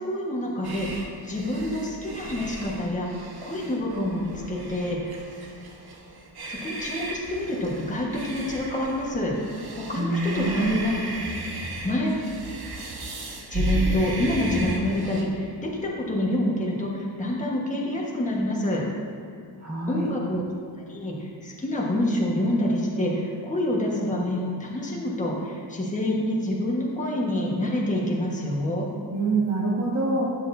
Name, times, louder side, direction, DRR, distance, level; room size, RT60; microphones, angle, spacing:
voice 1, 0.0-3.1 3.4-5.2 6.5-9.3 9.8-11.1 11.6-12.3 13.5-18.8 19.9-20.4 20.9-28.9, left 1 dB, 15° left, -4 dB, 1.4 m, -27 dB
sound 1, 0.6-15.2, right 2 dB, 60° right, 1.3 m, -34 dB
voice 2, 10.0-10.9 19.6-20.1 29.1-30.2, right 2 dB, 40° right, -6 dB, 1.7 m, -25 dB
12.0 x 8.7 x 2.7 m, 2.5 s
wide cardioid pair, 165°, 42 cm